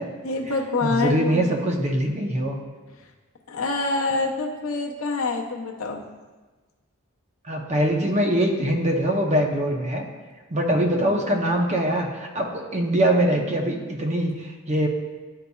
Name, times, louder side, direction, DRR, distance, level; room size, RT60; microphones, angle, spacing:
voice 1, 0.2-1.4 3.0-3.1 3.5-6.0, left 3 dB, 70° left, 0 dB, 0.7 m, -26 dB
voice 2, 0.8-2.6 7.5-10.0 10.5-14.9, right 1 dB, 30° right, 2 dB, 0.7 m, -23 dB
10.0 x 4.0 x 2.3 m, 1.3 s
head